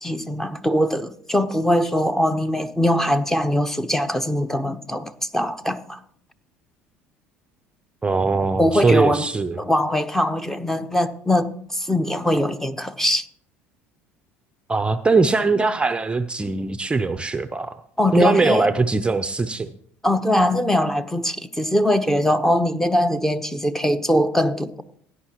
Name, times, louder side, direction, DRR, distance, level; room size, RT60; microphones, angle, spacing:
voice 1, 0.0-6.0 8.6-9.3 9.6-13.3 18.0-18.7 20.0-24.8, left 1 dB, 5° left, 0.9 m, -21 dB
voice 2, 8.0-9.6 14.7-17.8 18.1-19.7, right 3 dB, 15° right, 0.6 m, -21 dB
16.5 x 9.8 x 3.0 m
hypercardioid pair, 65°, 6 cm